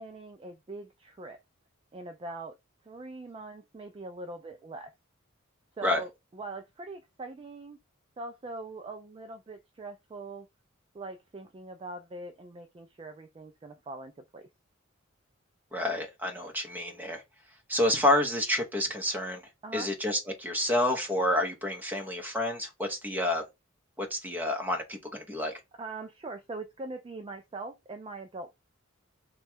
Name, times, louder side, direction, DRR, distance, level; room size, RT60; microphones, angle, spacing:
voice 1, 0.0-1.4 1.9-2.5 2.8-4.9 5.8-7.8 8.2-10.5 10.9-14.5 19.6-19.9 25.8-28.5, right 2 dB, 25° right, 0.4 m, -42 dB
voice 2, 15.7-17.2 17.7-19.4 19.7-23.4 24.0-25.5, left 1 dB, 10° right, 0.9 m, -29 dB
3.1 x 2.3 x 4.3 m
head